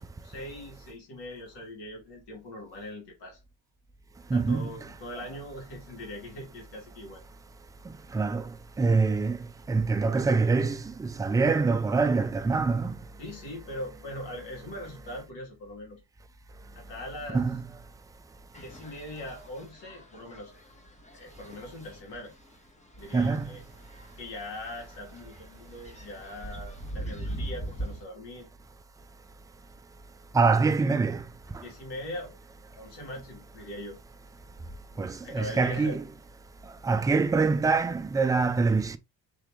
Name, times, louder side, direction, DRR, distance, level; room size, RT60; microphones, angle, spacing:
voice 1, 0.0-3.4 4.3-7.2 13.2-16.0 16.7-17.4 18.5-20.5 21.1-22.3 23.0-23.6 24.2-28.5 31.6-32.3 32.8-34.0 35.2-36.0, left 1 dB, 65° left, 2.2 m, -41 dB
voice 2, 4.3-4.7 8.1-8.4 8.8-9.4 9.7-12.9 17.3-17.7 23.1-23.5 30.3-31.2 35.0-36.1 36.8-39.0, right 4 dB, 10° right, 0.3 m, -25 dB
sound 1, 18.5-28.0, right 1 dB, 15° left, 1.1 m, -42 dB
3.5 x 2.9 x 3.5 m
supercardioid pair, 65°, 43 cm